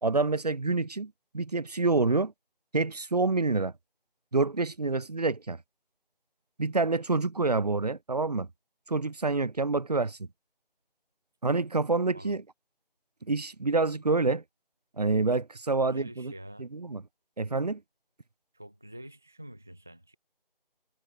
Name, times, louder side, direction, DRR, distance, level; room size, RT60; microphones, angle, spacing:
voice 1, 0.0-2.3 2.7-3.7 4.3-5.6 6.6-8.5 8.9-10.2 11.4-12.4 13.3-14.4 15.0-16.3 16.6-17.0 17.4-17.8, right 3 dB, 40° right, 3.3 m, -27 dB
voice 2, 15.7-16.7 18.5-20.2, right 1 dB, ahead, 0.9 m, -47 dB
figure-of-eight pair, 165°, 29 cm